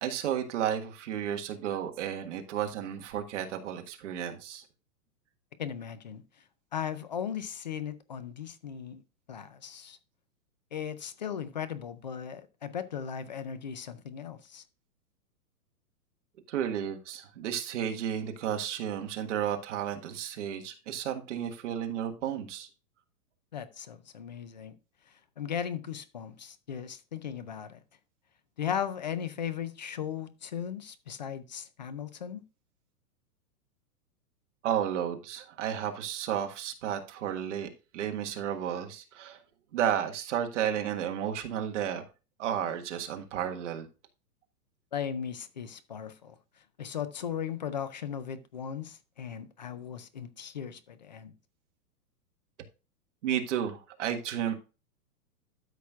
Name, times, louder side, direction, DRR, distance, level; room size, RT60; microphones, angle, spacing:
voice 1, 0.0-4.6 16.5-22.7 34.6-39.4 39.7-42.0 42.4-43.9 53.2-54.5, right 9 dB, 50° right, 1.6 m, -32 dB
voice 2, 5.6-6.2 6.7-9.0 9.3-10.0 10.7-14.6 23.5-24.8 25.4-27.8 28.6-32.4 44.9-46.4 46.8-51.3, left 8 dB, 30° left, 0.4 m, -37 dB
13.0 x 5.9 x 2.4 m
hypercardioid pair, 165°, 47 cm